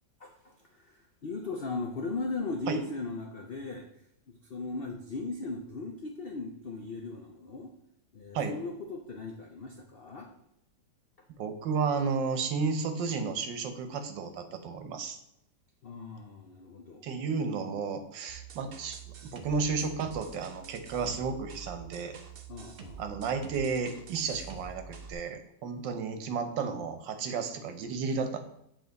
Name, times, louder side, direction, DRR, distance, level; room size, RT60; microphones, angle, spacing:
voice 1, 0.2-3.9 4.3-7.7 8.1-10.3 15.8-17.1 22.5-23.1, left 3 dB, 85° left, 2 dB, 0.5 m, -38 dB
voice 2, 11.4-15.2 17.0-22.2 23.0-28.4, right 5 dB, 85° right, 8 dB, 1.5 m, -32 dB
sound 1, 18.3-25.1, right 6 dB, 65° right, 0.5 m, -47 dB
7.5 x 4.0 x 3.9 m, 0.77 s
omnidirectional pair, 1.9 m